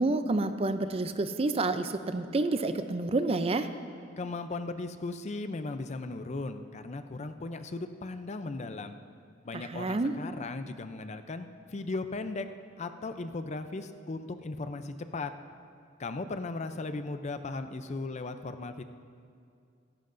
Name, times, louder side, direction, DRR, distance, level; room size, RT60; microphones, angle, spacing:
voice 1, 0.0-3.7 9.5-10.1, right 2 dB, 30° right, 10 dB, 0.5 m, -29 dB
voice 2, 4.2-9.0 9.5-12.5 12.8-15.3 16.0-18.8, left 3 dB, 35° left, 9 dB, 0.5 m, -37 dB
16.5 x 15.0 x 2.6 m, 2.3 s
head